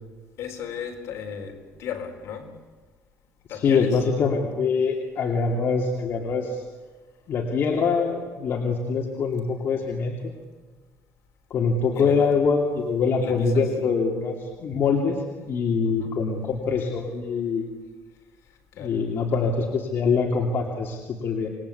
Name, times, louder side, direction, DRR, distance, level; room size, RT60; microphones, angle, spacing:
voice 1, 0.4-2.6 3.5-4.0 11.9-12.3 13.2-13.7 15.8-16.2 18.8-19.1, left 7 dB, 65° left, 4.3 m, -35 dB
voice 2, 3.5-6.6 7.3-10.3 11.5-17.7 18.8-21.5, left 5 dB, 50° left, 2.8 m, -24 dB
27.5 x 21.0 x 8.5 m
cardioid pair, 140°, 5 cm